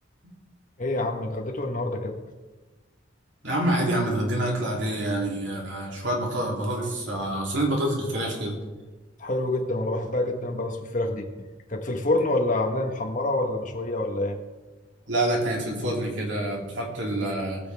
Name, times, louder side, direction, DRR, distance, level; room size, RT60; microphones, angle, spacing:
voice 1, 0.8-2.2 9.2-11.3 11.7-14.4, left 2 dB, 45° left, 3 dB, 1.4 m, -27 dB
voice 2, 3.4-8.5 15.1-17.6, right 1 dB, 75° right, -2 dB, 3.0 m, -27 dB
21.0 x 7.1 x 3.6 m, 1.2 s
head